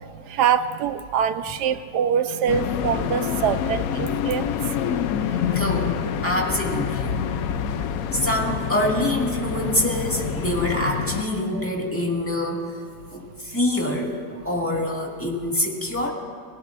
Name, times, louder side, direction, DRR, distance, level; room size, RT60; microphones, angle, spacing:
voice 1, 0.3-4.5 11.5-11.6, right 8 dB, 70° right, 11 dB, 1.2 m, -24 dB
sound 1, 2.5-11.2, left 8 dB, 65° left, 0.9 m, -27 dB
voice 2, 5.5-7.2 8.1-12.7 13.1-16.1, left 1 dB, 5° left, -2 dB, 1.9 m, -25 dB
30.0 x 18.5 x 2.5 m, 2.1 s
omnidirectional pair, 1.9 m